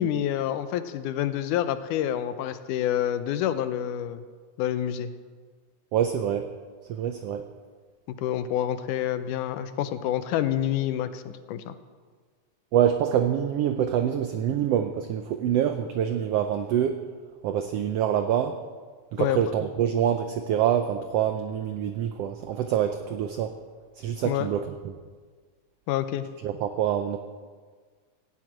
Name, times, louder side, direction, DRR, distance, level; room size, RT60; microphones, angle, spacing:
voice 1, 0.0-4.2 4.6-5.1 8.2-11.7 19.2-19.4 24.2-24.5 25.9-26.3, left 11 dB, 90° left, 11 dB, 2.3 m, -27 dB
voice 2, 5.9-6.5 6.9-7.4 12.7-17.0 17.4-18.6 19.1-23.5 24.0-24.9 26.4-27.2, right 9 dB, 80° right, 8 dB, 1.4 m, -26 dB
16.5 x 7.7 x 8.7 m, 1.5 s
omnidirectional pair, 3.5 m